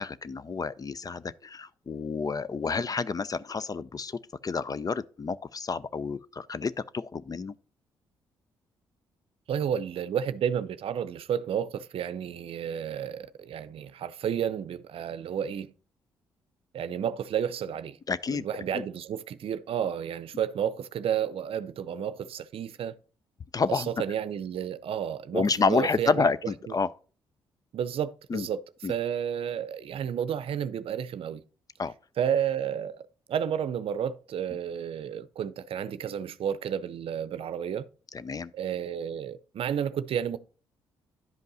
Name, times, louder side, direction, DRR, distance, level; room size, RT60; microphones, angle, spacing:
voice 1, 0.0-7.6 18.1-18.5 18.7-18.8 23.5-23.9 25.3-26.9 28.3-28.5 28.8-28.9 31.8-31.9 38.1-38.5, left 4 dB, 35° left, 0.5 m, -29 dB
voice 2, 9.5-15.7 16.7-18.0 18.3-23.0 23.7-26.2 27.7-28.6 28.9-31.4 32.2-37.9 38.5-40.4, right 8 dB, 65° right, 0.6 m, -31 dB
10.5 x 5.3 x 4.0 m
hypercardioid pair, 50°, 11 cm